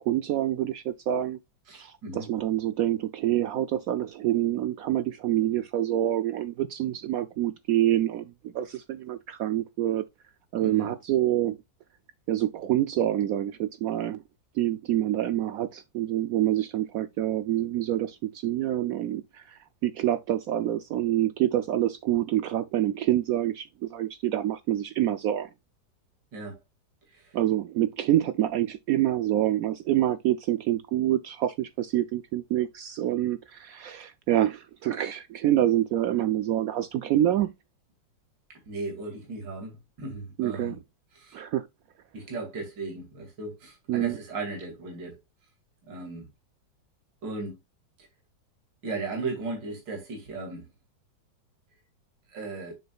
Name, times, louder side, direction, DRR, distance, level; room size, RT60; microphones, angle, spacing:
voice 1, 0.0-1.4 1.7-10.0 10.5-11.6 12.3-14.2 14.6-25.5 27.3-37.5 40.4-40.8 41.3-41.7 43.9-44.2, right 12 dB, 90° right, 0.7 m, -27 dB
voice 2, 1.7-2.3 10.6-10.9 26.3-26.6 27.1-27.4 38.7-40.8 41.1-41.4 42.1-45.2 45.9-46.2 47.2-47.5 48.8-50.7 52.3-52.7, right 3 dB, 65° right, 3.1 m, -36 dB
8.5 x 6.6 x 2.3 m
omnidirectional pair, 2.1 m